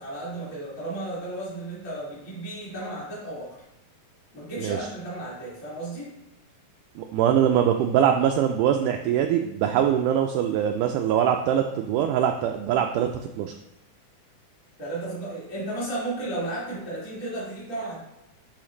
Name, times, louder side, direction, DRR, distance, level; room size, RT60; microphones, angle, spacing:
voice 1, 0.0-3.5 4.3-6.1 14.8-18.0, right 2 dB, 25° left, -9 dB, 2.9 m, -34 dB
voice 2, 7.0-13.5, right 9 dB, 85° right, 4 dB, 1.8 m, -23 dB
11.0 x 4.9 x 3.2 m, 0.91 s
omnidirectional pair, 4.2 m